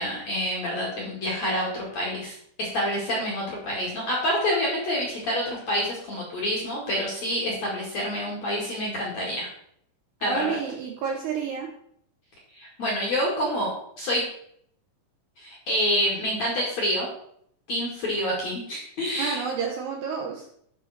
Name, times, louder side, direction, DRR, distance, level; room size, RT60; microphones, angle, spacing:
voice 1, 0.0-9.5 10.2-10.6 12.5-13.7 14.0-14.2 15.4-17.1 17.7-19.4, equal, 45° left, -4 dB, 2.5 m, -27 dB
voice 2, 10.2-11.7 19.2-20.5, right 6 dB, 70° right, 0 dB, 2.6 m, -30 dB
12.5 x 5.5 x 4.3 m, 0.69 s
omnidirectional pair, 5.9 m